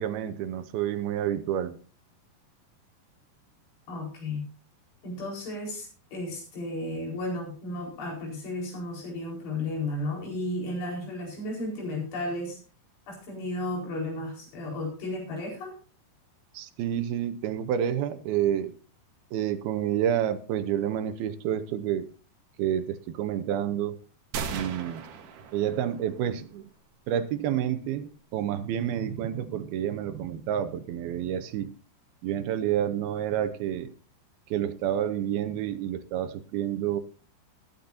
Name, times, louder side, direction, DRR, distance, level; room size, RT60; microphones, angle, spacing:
voice 1, 0.0-1.8 16.5-18.7 19.3-22.1 22.6-24.0 24.5-25.0 25.5-26.7 27.1-31.7 32.2-33.9 34.5-37.0, right 10 dB, 75° right, 11 dB, 2.6 m, -29 dB
voice 2, 3.9-4.4 5.0-12.6 13.1-15.7, left 1 dB, 85° left, -1 dB, 6.8 m, -34 dB
sound 1, 24.3-26.2, right 6 dB, 60° right, 2.6 m, -37 dB
20.0 x 10.5 x 2.7 m, 0.37 s
omnidirectional pair, 4.8 m